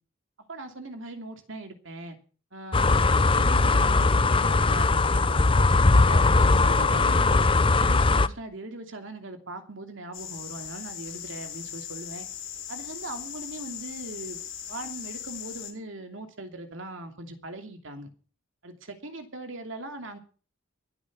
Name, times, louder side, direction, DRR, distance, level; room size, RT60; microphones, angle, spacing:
voice 1, 0.5-2.2 2.5-5.5 5.9-12.3 12.7-14.4 14.7-18.1 18.6-20.2, right 2 dB, 70° right, 6 dB, 2.8 m, -40 dB
sound 1, 2.7-8.3, left 3 dB, 25° left, 0.6 m, -20 dB
sound 2, 10.1-15.7, left 10 dB, 85° left, 6.4 m, -39 dB
24.0 x 8.4 x 4.9 m, 0.40 s
head